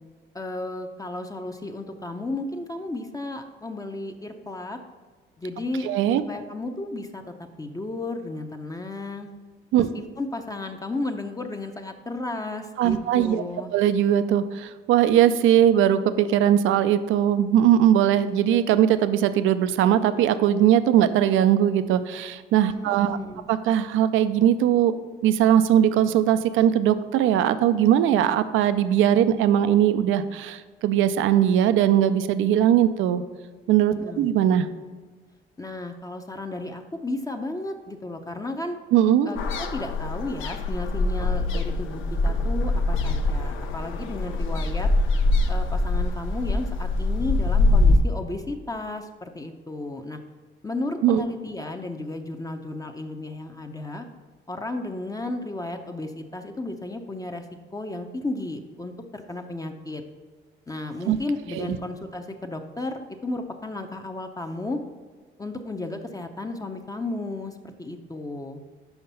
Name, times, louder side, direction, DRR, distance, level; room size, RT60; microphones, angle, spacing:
voice 1, 0.3-4.8 5.4-5.9 6.2-9.3 9.8-13.7 22.7-23.5 34.0-34.3 35.6-38.8 39.2-44.9 45.5-50.2 50.6-54.1 54.5-57.5 57.7-60.0 60.7-64.8 65.4-68.6, left 2 dB, 20° left, 5 dB, 0.6 m, -33 dB
voice 2, 5.8-6.2 9.7-9.9 12.8-13.4 13.7-23.2 23.5-25.0 25.2-33.2 33.7-34.7 38.9-39.3 51.0-51.2 61.1-61.2 61.5-61.7, right 10 dB, 85° right, 12 dB, 0.4 m, -20 dB
sound 1, 39.4-48.0, left 2 dB, 85° left, 0.7 m, -23 dB
5.8 x 5.2 x 5.5 m, 1.4 s
cardioid pair, 90°, 20 cm